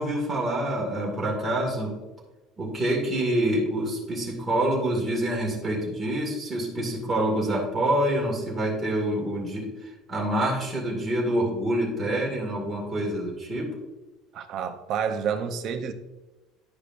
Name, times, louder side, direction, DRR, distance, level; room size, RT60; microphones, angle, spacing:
voice 1, 0.0-2.0 2.6-13.7, right 1 dB, 15° right, 2.1 m, -26 dB
voice 2, 14.3-15.9, right 7 dB, 45° right, 0.7 m, -29 dB
11.0 x 5.0 x 2.6 m
cardioid pair, 155°, 0 cm